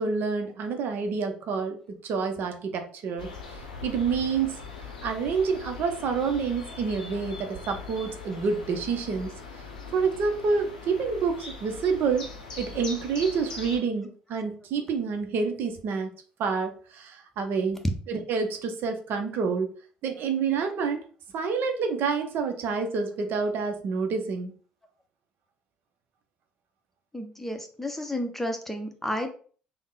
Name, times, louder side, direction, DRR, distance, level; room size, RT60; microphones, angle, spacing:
voice 1, 0.0-3.3 3.8-4.6 5.0-9.3 9.9-12.3 12.6-16.1 16.4-17.8 18.1-19.7 20.0-21.1 21.3-24.5, right 5 dB, 60° right, 5 dB, 0.6 m, -28 dB
sound 1, 3.2-13.8, left 4 dB, 85° left, 0.5 m, -41 dB
voice 2, 27.1-29.3, left 1 dB, 5° left, 4 dB, 0.7 m, -32 dB
3.5 x 2.1 x 3.8 m, 0.42 s
figure-of-eight pair, 50°, 4 cm